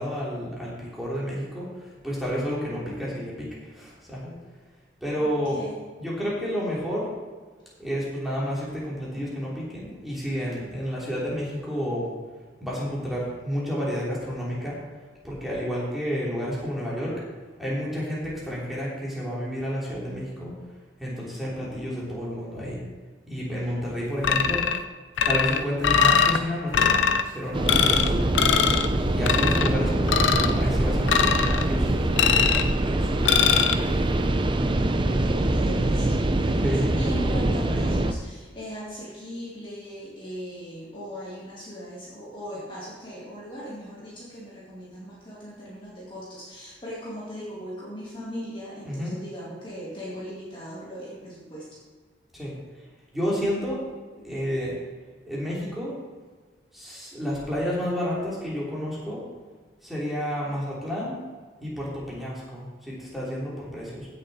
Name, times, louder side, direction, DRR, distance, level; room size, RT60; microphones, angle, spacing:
voice 1, 0.0-4.3 5.0-5.6 6.0-7.1 7.8-12.1 12.6-14.8 15.2-17.2 17.6-20.5 21.0-22.8 23.3-24.6 25.2-27.0 27.3-28.2 28.9-34.0 36.6-36.9 48.8-49.1 52.3-52.5 53.1-53.8 54.2-54.7 55.3-56.0 56.7-59.2 59.8-61.2 61.6-64.1, equal, ahead, -7 dB, 3.4 m, -30 dB
voice 2, 5.2-5.9 34.8-51.7, equal, 25° left, -6 dB, 2.3 m, -39 dB
sound 1, 24.2-24.8 25.2-26.4 26.7-27.2 27.7-28.1 28.4-28.9 29.3-29.7 30.1-30.5 31.1-31.7 32.2-32.7 33.3-33.7, left 7 dB, 80° left, 0.6 m, -21 dB
sound 2, 27.5-38.1, right 1 dB, 25° right, 0.6 m, -24 dB
15.5 x 6.8 x 4.3 m, 1.5 s
head